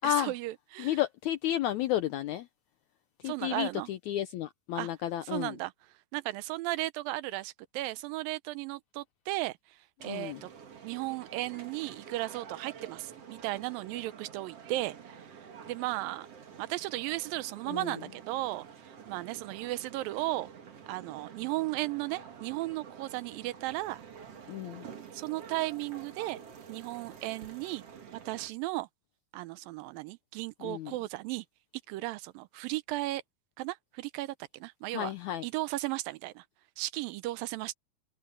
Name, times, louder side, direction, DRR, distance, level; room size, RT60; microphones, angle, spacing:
voice 1, 0.0-1.0 3.2-3.9 4.8-4.9 5.2-5.7 6.1-9.8 10.0-10.5 10.8-15.0 15.2-15.3 15.7-16.3 16.6-20.5 20.9-24.0 25.1-26.4 26.7-27.8 28.3-28.9 29.3-31.4 31.9-33.2 33.6-35.1 35.4-36.4 36.8-37.7, right 18 dB, 80° right, 2.3 m, -35 dB
voice 2, 0.8-2.5 3.2-5.6 10.0-10.4 17.7-17.9 24.5-24.9 30.6-30.9 34.9-35.5, left 12 dB, 80° left, 1.7 m, -32 dB
sound 1, 10.0-28.5, right 7 dB, 45° right, 2.8 m, -49 dB
omnidirectional pair, 4.1 m